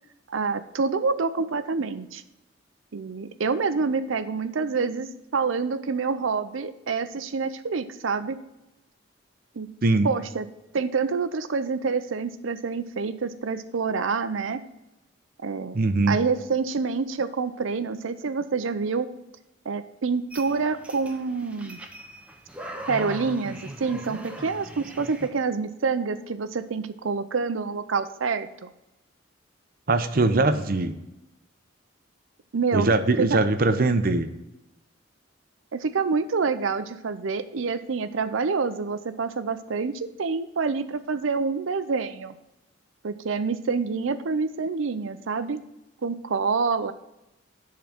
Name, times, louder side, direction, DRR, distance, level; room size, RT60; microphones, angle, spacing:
voice 1, 0.3-2.2 2.9-8.4 9.6-9.7 10.0-10.5 10.7-14.6 15.4-15.8 16.1-19.1 19.7-21.8 22.9-28.7 30.3-30.5 32.5-32.9 33.2-33.4 35.7-42.3 43.0-45.6 46.0-46.9, right 4 dB, 85° right, 12 dB, 0.6 m, -27 dB
voice 2, 9.8-10.1 15.7-16.2 29.9-31.0 32.7-34.3, right 2 dB, 50° right, 9 dB, 0.6 m, -21 dB
sound 1, 20.3-25.3, right 1 dB, 5° right, 0.7 m, -40 dB
10.5 x 3.8 x 5.9 m, 0.93 s
head